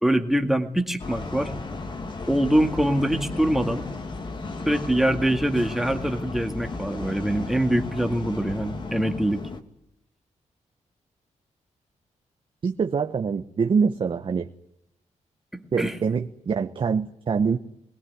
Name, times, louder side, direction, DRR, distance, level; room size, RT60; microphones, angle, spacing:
voice 1, 0.0-1.5 2.3-3.8 4.7-9.4 15.8-16.0, right 1 dB, ahead, 4 dB, 2.0 m, -24 dB
sound 1, 1.0-9.6, left 3 dB, 40° left, 2.1 m, -34 dB
voice 2, 12.6-14.5 15.7-17.6, right 5 dB, 40° right, 5 dB, 1.0 m, -24 dB
23.0 x 20.5 x 9.5 m, 0.80 s
wide cardioid pair, 145°, 13 cm